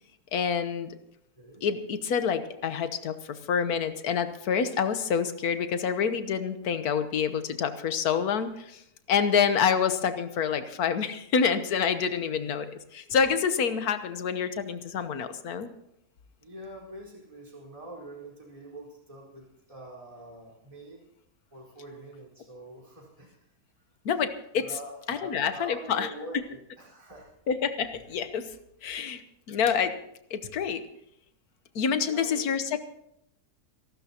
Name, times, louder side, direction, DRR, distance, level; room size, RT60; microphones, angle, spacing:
voice 1, 0.3-0.9 1.6-8.8 9.1-12.7 12.9-15.7 24.0-24.7 25.1-26.1 27.5-28.5 28.8-29.2 29.5-30.0 30.3-30.8 31.7-32.8, left 7 dB, 70° left, 10 dB, 1.6 m, -27 dB
voice 2, 16.4-21.0 21.5-23.5 24.6-27.3 32.0-32.7, right 1 dB, 20° right, -4 dB, 4.6 m, -45 dB
26.5 x 13.0 x 2.9 m, 0.76 s
omnidirectional pair, 1.7 m